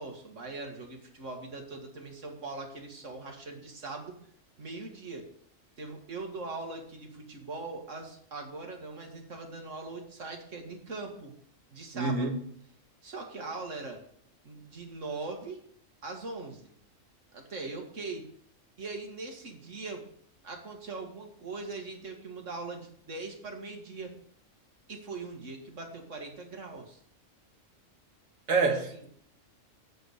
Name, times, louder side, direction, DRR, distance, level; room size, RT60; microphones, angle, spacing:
voice 1, 0.0-4.2 4.6-5.2 5.8-11.3 11.7-12.4 13.0-14.0 14.4-15.6 16.0-16.7 17.3-18.2 18.8-20.0 20.4-24.1 24.9-27.0 28.7-29.1, right 3 dB, 70° right, 2.3 m, -41 dB
voice 2, 11.9-12.4 28.5-29.1, right 4 dB, 85° right, 2.0 m, -27 dB
8.3 x 8.0 x 6.6 m
omnidirectional pair, 1.3 m